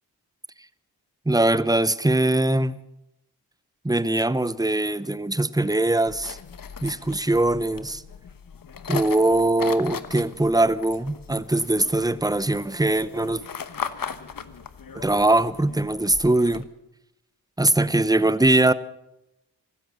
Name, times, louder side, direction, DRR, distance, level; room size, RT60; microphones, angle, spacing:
voice 1, 1.3-2.8 3.8-6.4 6.8-8.0 8.9-13.4 14.9-16.7 17.6-18.7, right 2 dB, 10° right, 0.8 m, -21 dB
sound 1, 6.1-16.6, left 6 dB, 55° left, 1.1 m, -38 dB
15.5 x 12.5 x 6.9 m
cardioid pair, 45°, 41 cm